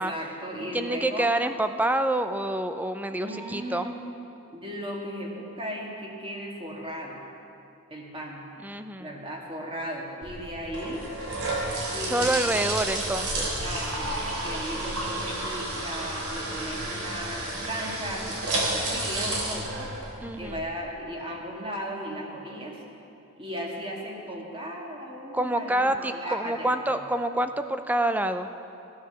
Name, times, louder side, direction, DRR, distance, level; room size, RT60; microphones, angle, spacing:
voice 1, 0.0-1.3 3.1-4.0 4.5-7.2 7.9-8.5 9.0-11.1 11.9-12.6 13.6-19.9 20.4-22.8 23.4-26.9, equal, 25° right, -1 dB, 2.2 m, -36 dB
voice 2, 0.6-3.9 8.6-9.1 12.1-13.6 20.2-20.6 25.3-28.5, right 1 dB, 5° right, 9 dB, 0.5 m, -27 dB
sound 1, 10.2-20.6, right 2 dB, 75° right, 3.3 m, -31 dB
15.5 x 10.0 x 7.1 m, 2.7 s
head